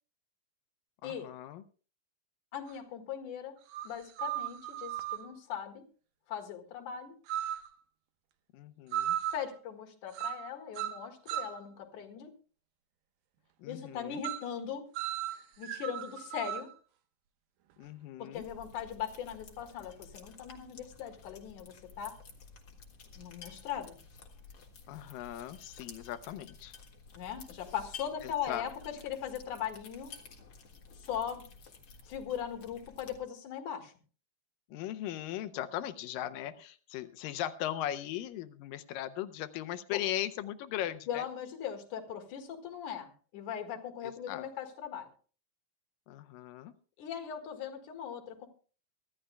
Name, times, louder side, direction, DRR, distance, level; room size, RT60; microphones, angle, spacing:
voice 1, 1.0-1.6 8.5-9.2 13.6-14.2 17.8-18.4 24.9-26.7 28.5-28.6 34.7-41.2 44.3-44.5 46.1-46.7, left 12 dB, 85° left, 12 dB, 2.4 m, -38 dB
voice 2, 2.5-3.6 3.8-5.8 6.3-7.2 9.3-12.3 13.7-14.9 15.6-16.7 18.2-22.2 23.1-24.0 27.1-30.1 31.0-31.4 32.0-33.9 39.9-40.0 41.1-45.1 47.0-48.5, left 9 dB, 65° left, 6 dB, 3.0 m, -39 dB
sound 1, 2.7-2.8 3.7-5.3 7.3-7.7 8.9-9.5 10.1-10.5 10.8-11.6 14.2-14.5 15.0-16.7, right 11 dB, 90° right, 2.8 m, -36 dB
sound 2, 18.3-33.2, left 5 dB, 50° left, 2.6 m, -52 dB
24.0 x 13.5 x 2.2 m, 0.39 s
omnidirectional pair, 3.9 m